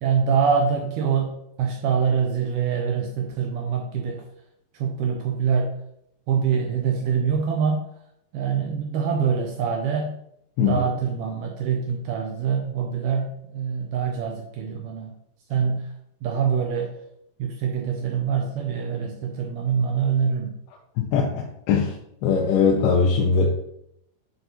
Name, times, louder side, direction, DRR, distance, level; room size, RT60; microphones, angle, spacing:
voice 1, 0.0-4.2 4.7-5.8 6.3-7.8 8.3-10.2 10.6-15.2 15.5-15.9 16.2-17.0 17.4-20.6, right 6 dB, 85° right, 2 dB, 1.8 m, -25 dB
voice 2, 21.0-21.9 22.2-23.5, left 5 dB, 90° left, -1 dB, 2.7 m, -21 dB
9.0 x 3.9 x 2.9 m, 0.76 s
omnidirectional pair, 4.4 m